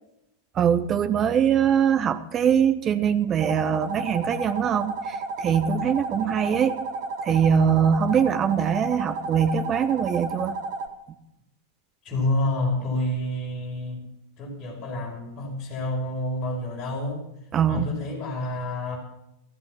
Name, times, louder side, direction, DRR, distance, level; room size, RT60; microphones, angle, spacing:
voice 1, 0.5-6.8 7.2-10.6 17.5-17.9, right 8 dB, 25° right, 11 dB, 1.0 m, -22 dB
sound 1, 3.4-10.9, right 3 dB, 45° right, 2.0 m, -32 dB
voice 2, 12.0-14.0 14.4-17.3 17.7-19.0, left 1 dB, 30° left, -3 dB, 5.8 m, -29 dB
15.5 x 14.0 x 5.9 m, 0.85 s
figure-of-eight pair, 90°, 0 cm